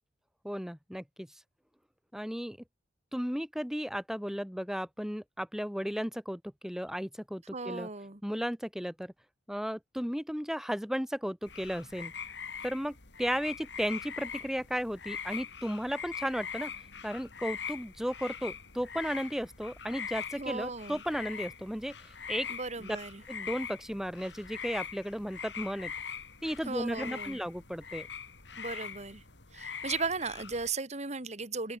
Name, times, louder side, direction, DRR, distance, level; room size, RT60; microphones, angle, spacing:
voice 1, 0.4-1.3 2.1-2.6 3.1-7.9 8.2-9.1 9.5-12.1 12.6-16.7 17.0-21.9 22.3-22.5 22.8-23.0 23.3-25.9 26.4-28.1, equal, 5° right, 3.2 m, -34 dB
voice 2, 7.5-8.2 20.4-21.0 22.5-23.2 26.7-27.4 28.6-29.2 29.5-31.8, right 4 dB, 40° right, 2.2 m, -36 dB
sound 1, 11.4-30.7, left 7 dB, 70° left, 3.9 m, -42 dB
open air
head